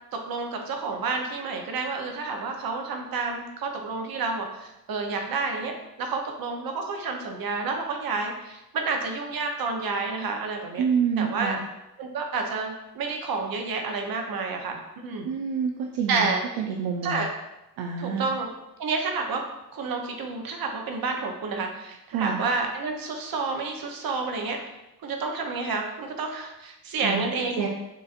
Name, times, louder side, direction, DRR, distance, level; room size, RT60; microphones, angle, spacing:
voice 1, 0.3-10.8 11.2-11.6 12.0-15.3 16.1-16.4 17.0-17.3 18.0-18.5 18.8-19.4 19.7-24.6 25.0-27.7, right 4 dB, 60° right, 3 dB, 0.9 m, -30 dB
voice 2, 10.8-11.6 15.2-17.3 17.8-18.3 22.1-22.5 27.0-27.3 27.6-27.7, right 6 dB, 80° right, 1 dB, 0.5 m, -27 dB
6.8 x 2.5 x 2.5 m, 0.92 s
cardioid pair, 65°, 40 cm